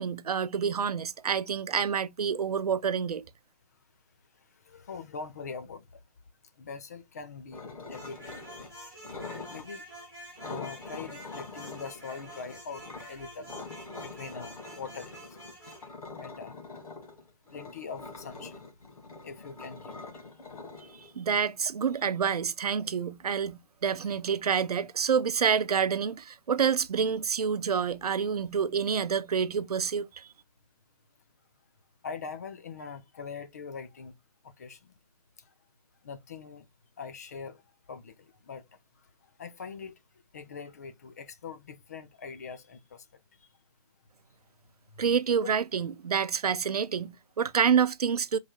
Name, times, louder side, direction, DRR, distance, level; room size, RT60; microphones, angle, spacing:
voice 1, 0.0-3.3 21.2-30.3 45.0-48.4, right 7 dB, 75° right, 0.6 m, -28 dB
voice 2, 4.6-5.9 6.6-7.6 7.9-8.2 8.6-8.7 9.5-9.8 10.4-13.7 14.0-15.1 16.2-16.6 17.5-18.6 19.2-20.0 32.0-34.1 34.4-34.9 36.0-36.6 37.0-37.6 37.9-38.6 39.4-40.0 40.3-43.0 45.4-45.5, left 5 dB, 25° left, 0.4 m, -42 dB
sound 1, 7.5-8.7 9.0-9.7 10.4-13.0 13.5-21.5, left 3 dB, 65° left, 1.5 m, -44 dB
sound 2, 7.9-15.9, right 1 dB, 10° left, 2.5 m, -48 dB
4.7 x 3.2 x 2.2 m
hypercardioid pair, 155°, 20 cm